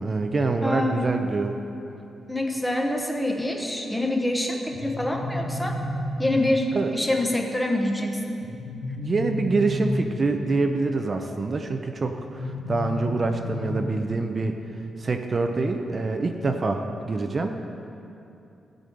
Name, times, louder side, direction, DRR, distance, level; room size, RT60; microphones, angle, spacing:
voice 1, 0.0-1.6 6.7-6.9 9.0-14.6 15.0-17.5, right 3 dB, 35° right, 5 dB, 0.7 m, -26 dB
voice 2, 0.6-1.1 2.3-5.8 6.2-8.4, left 1 dB, 5° left, 2 dB, 1.1 m, -26 dB
sound 1, 4.7-6.7 8.4-10.4 12.1-14.1, left 1 dB, 85° left, 1.6 m, -32 dB
15.0 x 5.1 x 7.8 m, 2.7 s
wide cardioid pair, 130°, 0 cm